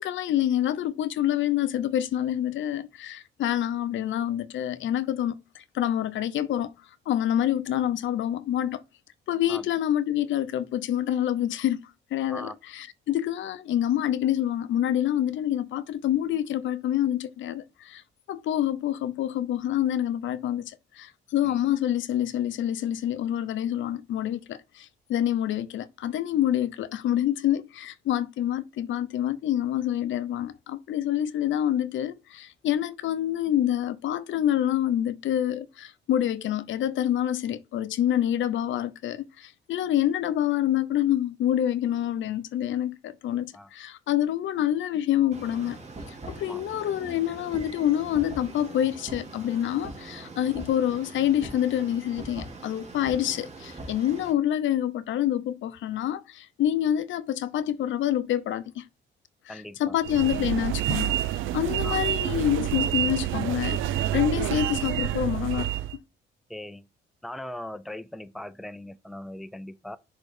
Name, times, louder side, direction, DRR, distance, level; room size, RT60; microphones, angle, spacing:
voice 1, 0.0-6.7 7.1-8.8 9.3-11.8 12.1-18.0 18.3-45.8 46.1-58.9 59.5-63.8 64.1-65.7, left 11 dB, 75° left, 0.7 m, -27 dB
voice 2, 43.3-43.7 46.4-46.6 59.5-60.0 61.8-62.0 64.4-64.5 66.5-66.9 67.2-70.0, left 1 dB, ahead, 0.5 m, -40 dB
sound 1, 45.3-54.3, right 2 dB, 35° right, 2.4 m, -42 dB
sound 2, 60.0-66.0, right 12 dB, 90° right, 0.5 m, -28 dB
6.3 x 3.7 x 4.9 m
cardioid pair, 90°, 20 cm